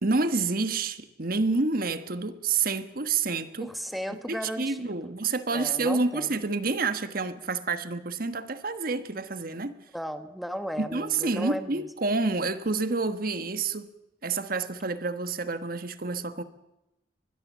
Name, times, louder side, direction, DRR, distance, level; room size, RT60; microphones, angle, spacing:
voice 1, 0.0-3.7 4.3-9.7 10.8-13.9 14.2-16.4, right 3 dB, 55° right, 1.3 m, -28 dB
voice 2, 3.6-5.1 5.5-6.4 9.9-11.9, equal, ahead, 1.5 m, -35 dB
23.5 x 21.0 x 7.4 m
head